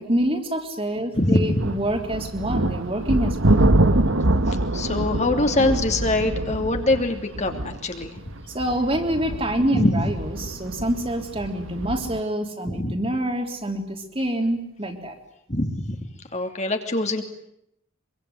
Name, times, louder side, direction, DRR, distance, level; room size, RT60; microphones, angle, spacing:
voice 1, 0.0-3.7 8.5-15.2, right 1 dB, 25° right, 4 dB, 3.6 m, -26 dB
voice 2, 1.1-1.5 4.5-8.2 9.7-10.1 12.7-12.9 15.5-16.0 16.3-17.2, left 2 dB, 35° left, 5 dB, 2.8 m, -23 dB
sound 1, 1.5-12.2, right 1 dB, 75° right, 1.5 m, -25 dB
25.5 x 24.0 x 9.7 m, 0.78 s
head